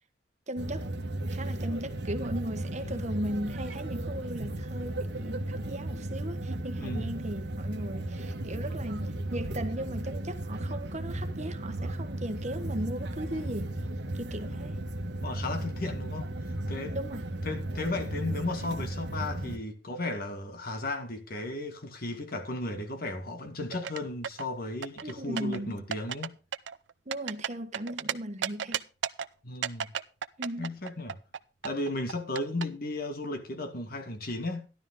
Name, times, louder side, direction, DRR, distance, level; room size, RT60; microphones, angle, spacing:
voice 1, 0.5-0.9 1.3-13.7 14.1-14.8 16.9-17.2 25.0-25.8 27.1-28.8 30.4-30.7, right 1 dB, 40° right, 1.3 m, -37 dB
sound 1, 0.6-19.6, right 1 dB, 65° right, 1.4 m, -35 dB
voice 2, 6.8-7.1 14.5-14.6 15.2-16.3 16.7-17.0 17.4-26.4 29.4-29.9 30.6-31.2 31.6-34.7, left 2 dB, 55° left, 2.1 m, -35 dB
sound 2, 23.7-24.5 24.8-25.6 25.9-26.3 26.5-28.1 28.4-29.3 29.6-31.4 31.6-32.6, right 8 dB, 85° right, 0.6 m, -33 dB
12.5 x 12.0 x 3.8 m
head